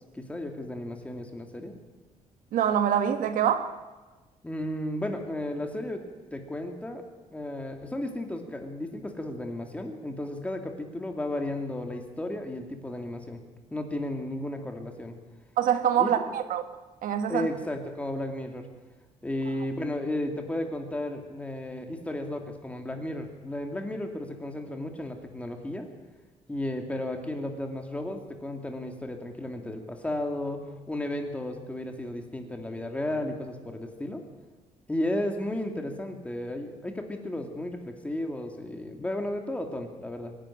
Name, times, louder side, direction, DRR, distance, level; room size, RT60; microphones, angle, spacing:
voice 1, 0.1-1.7 4.4-6.0 6.3-7.0 7.3-13.4 13.7-15.2 16.0-16.1 17.3-18.7 19.2-25.9 26.5-34.2 34.9-40.4, left 1 dB, 10° left, 2.3 m, -34 dB
voice 2, 2.5-3.7 15.6-16.6 17.0-17.5, right 9 dB, 85° right, 1.6 m, -25 dB
24.0 x 11.5 x 9.9 m
cardioid pair, 165°, 14 cm